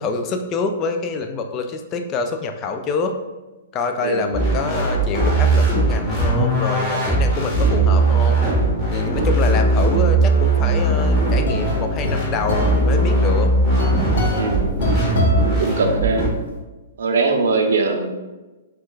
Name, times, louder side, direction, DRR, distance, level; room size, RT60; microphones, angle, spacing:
voice 1, 0.0-3.2 3.7-8.5 8.9-13.5, left 4 dB, 30° left, 6 dB, 0.3 m, -26 dB
sound 1, 4.3-16.3, right 2 dB, 5° left, 1.3 m, -19 dB
sound 2, 10.9-16.3, left 1 dB, 65° left, 0.7 m, -28 dB
voice 2, 14.3-14.8 15.5-16.2 17.0-18.1, right 3 dB, 65° right, 4 dB, 0.5 m, -21 dB
4.3 x 2.3 x 2.3 m, 1.1 s
figure-of-eight pair, 115°, 0 cm